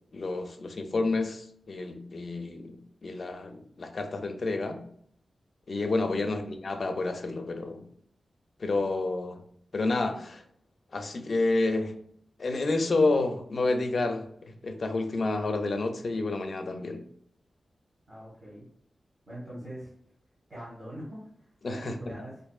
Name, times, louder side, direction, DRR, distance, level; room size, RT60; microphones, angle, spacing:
voice 1, 0.1-4.8 5.7-7.9 8.6-9.4 9.7-10.4 10.9-12.0 12.4-17.0 21.6-22.1, left 2 dB, 50° left, 6 dB, 0.4 m, -29 dB
voice 2, 18.1-18.6 19.3-19.9 20.5-22.4, equal, 35° right, -9 dB, 1.3 m, -43 dB
4.5 x 2.6 x 2.3 m, 0.66 s
wide cardioid pair, 160°, 0 cm